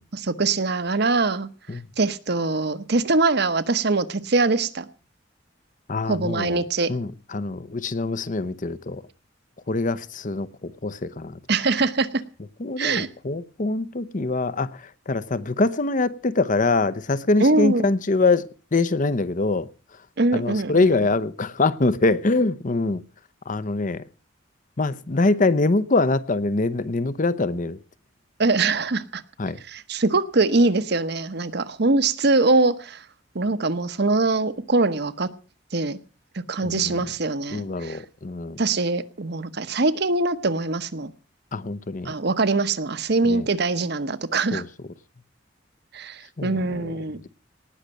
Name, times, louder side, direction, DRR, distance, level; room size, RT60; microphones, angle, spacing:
voice 1, 0.1-1.5 2.0-4.9 6.1-6.9 11.5-12.1 12.8-13.1 17.4-17.9 20.2-21.1 28.4-29.2 29.6-33.0 33.3-35.3 35.7-36.0 36.3-38.0 38.6-41.1 42.0-44.6 45.9-47.2, right 3 dB, 60° right, 1.1 m, -23 dB
voice 2, 5.9-6.6 6.9-9.0 9.7-11.4 12.6-14.7 15.1-19.7 20.3-23.0 23.5-24.0 24.8-27.8 29.4-29.6 36.6-36.9 37.5-38.6 41.5-42.1 43.3-43.4 44.5-44.6 46.4-46.9, left 3 dB, 45° left, 0.8 m, -24 dB
18.5 x 6.6 x 9.1 m
head